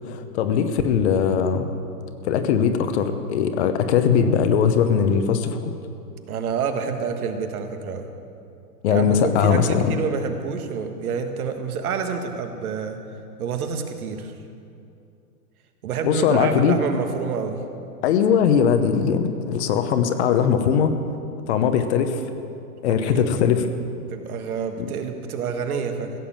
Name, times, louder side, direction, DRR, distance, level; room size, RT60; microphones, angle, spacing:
voice 1, 0.1-1.7 2.2-5.7 8.8-9.9 16.0-16.8 18.0-20.9 21.5-22.2 22.8-23.7 24.8-24.9, left 7 dB, 45° left, 9 dB, 1.0 m, -20 dB
voice 2, 6.3-8.1 8.9-13.0 13.4-14.3 15.8-17.6 22.9-23.4 24.1-26.1, right 6 dB, 65° right, 6 dB, 1.6 m, -28 dB
16.0 x 7.0 x 7.4 m, 2.5 s
hypercardioid pair, 145°, 47 cm